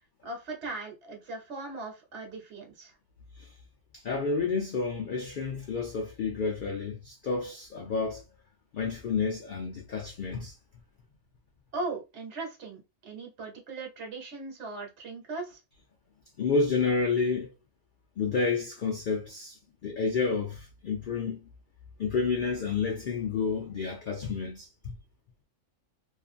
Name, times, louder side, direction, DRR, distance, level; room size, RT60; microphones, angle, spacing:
voice 1, 0.2-2.9 11.7-15.6, right 3 dB, 55° right, 1.2 m, -38 dB
voice 2, 4.0-8.2 8.7-10.5 16.4-17.5 18.2-19.6 19.8-21.4 22.0-24.9, left 4 dB, 85° left, 0.4 m, -30 dB
2.5 x 2.4 x 2.4 m
omnidirectional pair, 1.4 m